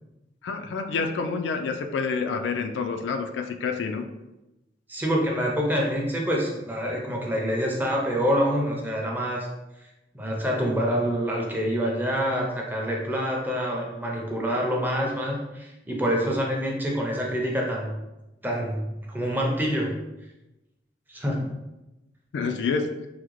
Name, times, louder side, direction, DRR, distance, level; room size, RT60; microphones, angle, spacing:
voice 1, 0.4-4.0 22.3-22.9, left 5 dB, 80° left, 6 dB, 0.3 m, -28 dB
voice 2, 4.9-9.5 10.1-17.9 18.4-19.9 21.1-21.5, equal, 10° right, -1 dB, 0.5 m, -26 dB
3.5 x 2.1 x 3.1 m, 0.98 s
head